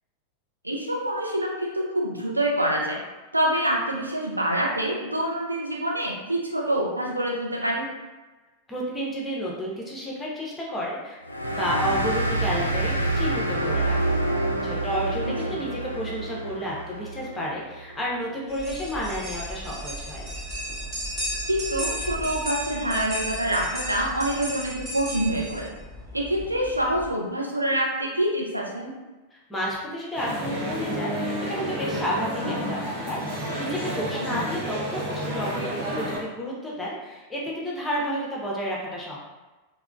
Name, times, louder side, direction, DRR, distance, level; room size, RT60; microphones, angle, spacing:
voice 1, 0.6-3.0 3.3-7.9 15.2-15.3 21.5-25.7 26.1-29.0 34.3-34.4, right 1 dB, 85° right, -3 dB, 0.5 m, -26 dB
voice 2, 8.7-11.2 11.6-14.0 14.6-20.2 29.5-39.2, equal, 15° left, -4 dB, 0.8 m, -31 dB
sound 1, 11.3-18.3, right 2 dB, 90° left, 0.3 m, -27 dB
sound 2, 18.5-27.1, equal, 10° right, 1.3 m, -34 dB
sound 3, 30.1-36.2, equal, 55° right, 1.0 m, -30 dB
3.5 x 2.2 x 2.3 m, 1.2 s
figure-of-eight pair, 90°, 0 cm